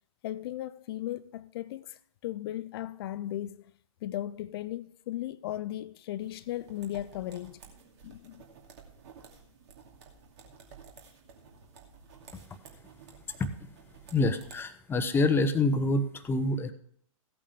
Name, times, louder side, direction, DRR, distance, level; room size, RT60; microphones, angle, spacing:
voice 1, 0.2-3.7 4.0-7.6 8.0-8.4, left 13 dB, 45° left, 0.4 m, -36 dB
sound 1, 6.2-14.6, right 5 dB, 50° right, 2.6 m, -53 dB
voice 2, 14.1-16.7, left 2 dB, 10° left, 0.9 m, -26 dB
16.0 x 8.6 x 3.6 m
figure-of-eight pair, 115°, 18 cm